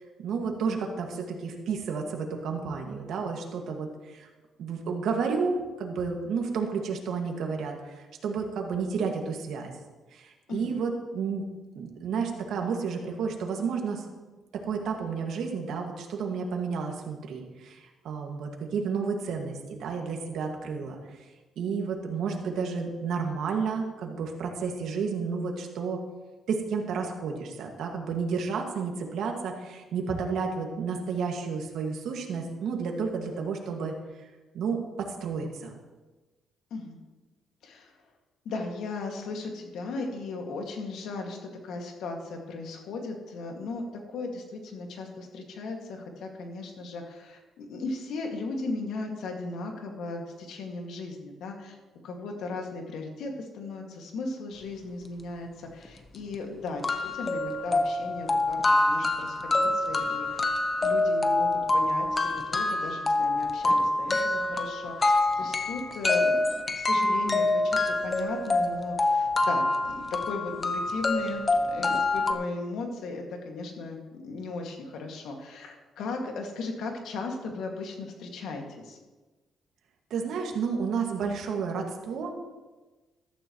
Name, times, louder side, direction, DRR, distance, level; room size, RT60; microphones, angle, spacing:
voice 1, 0.2-4.3 4.6-9.7 10.1-11.5 11.8-14.1 14.5-21.0 21.6-26.0 26.5-33.9 34.2-34.3 34.5-35.7 80.1-82.3, right 5 dB, 75° right, 2 dB, 2.0 m, -31 dB
voice 2, 38.5-43.8 44.1-51.8 52.0-58.6 58.9-60.5 60.8-66.5 66.7-79.0, left 3 dB, 80° left, 2 dB, 2.1 m, -36 dB
sound 1, 55.9-56.0 56.3-56.4 56.8-72.3, left 2 dB, 30° left, 1.1 m, -26 dB
14.5 x 12.5 x 3.1 m, 1.2 s
cardioid pair, 90°, 0 cm